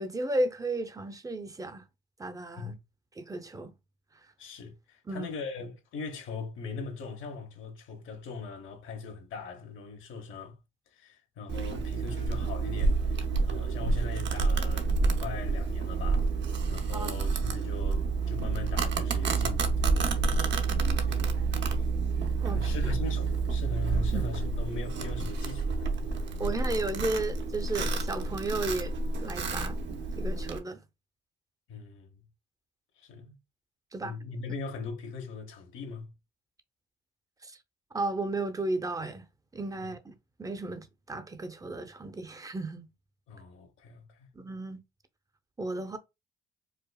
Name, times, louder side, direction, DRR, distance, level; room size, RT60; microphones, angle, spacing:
voice 1, 0.0-1.8 2.2-2.7 3.2-3.7 5.1-5.3 16.9-17.1 22.4-22.7 24.1-24.2 26.4-28.9 29.2-29.8 30.2-30.8 33.9-34.2 37.4-37.6 37.9-39.3 39.5-42.9 44.3-44.8 45.6-46.0, right 2 dB, 15° right, 0.6 m, -34 dB
voice 2, 4.4-10.6 10.9-20.2 21.0-21.9 22.5-26.7 31.7-32.3 33.0-33.4 34.0-36.1 39.8-39.9 43.3-44.3, left 4 dB, 85° left, 1.1 m, -40 dB
Domestic sounds home sounds, 11.5-30.6, right 4 dB, 65° right, 0.8 m, -29 dB
4.9 x 2.3 x 2.3 m
cardioid pair, 90°, 20 cm